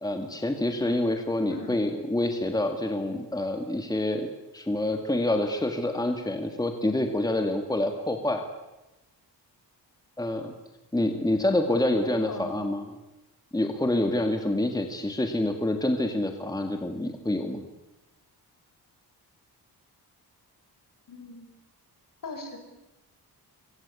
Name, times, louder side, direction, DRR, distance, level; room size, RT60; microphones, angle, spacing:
voice 1, 0.0-4.3 4.5-8.4 10.2-10.5 10.9-12.9 13.5-17.7, left 1 dB, 10° left, 5 dB, 2.1 m, -27 dB
voice 2, 12.3-12.7 21.1-21.5 22.2-22.6, left 3 dB, 55° left, 5 dB, 6.2 m, -39 dB
26.0 x 24.0 x 8.4 m, 1.0 s
wide cardioid pair, 145°, 40 cm